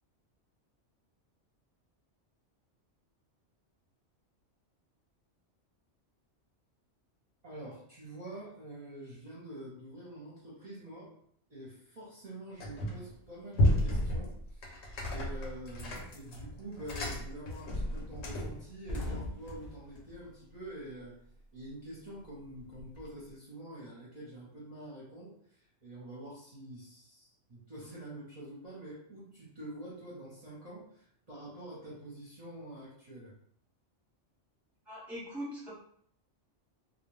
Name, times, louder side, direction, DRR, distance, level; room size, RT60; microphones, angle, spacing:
voice 1, 7.4-11.1 11.5-14.8 15.1-21.2 21.5-33.3, right 1 dB, 40° right, -7 dB, 0.7 m, -46 dB
sound 1, 12.6-13.1 13.5-18.6, left 1 dB, 70° left, 0.9 m, -32 dB
sound 2, 16.8-17.1 17.5-17.6 17.9-18.0 18.4-21.4 21.6-23.3, left 1 dB, 55° left, 0.5 m, -43 dB
voice 2, 34.9-35.7, equal, ahead, -6 dB, 0.8 m, -41 dB
2.3 x 2.2 x 3.1 m, 0.66 s
omnidirectional pair, 1.2 m